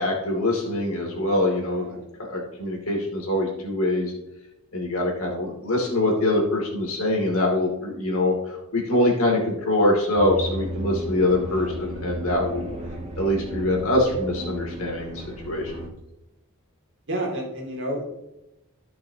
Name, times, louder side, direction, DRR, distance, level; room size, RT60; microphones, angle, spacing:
voice 1, 0.0-4.1 4.7-12.6 13.2-15.7, left 1 dB, 75° left, -1 dB, 2.6 m, -24 dB
voice 2, 1.7-2.0 11.5-11.8 12.8-13.0 17.1-18.2, right 1 dB, 55° right, -1 dB, 2.4 m, -31 dB
sound 1, 10.2-15.9, equal, 30° right, 1.4 m, -34 dB
14.5 x 6.2 x 2.9 m, 0.89 s
head